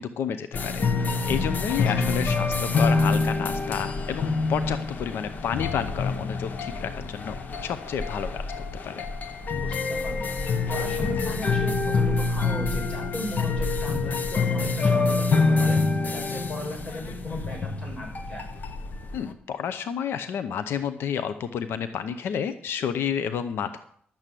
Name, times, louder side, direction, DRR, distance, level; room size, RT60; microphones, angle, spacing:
voice 1, 0.0-7.4 7.6-8.4 8.8-9.1 19.1-23.8, left 8 dB, 80° left, 11 dB, 0.7 m, -30 dB
sound 1, 0.5-19.3, left 3 dB, 50° left, 1.2 m, -26 dB
voice 2, 1.6-2.1 9.6-15.8 16.1-18.4, left 1 dB, 30° left, 0 dB, 6.0 m, -37 dB
12.0 x 7.6 x 8.3 m, 0.64 s
cardioid pair, 120°, 4 cm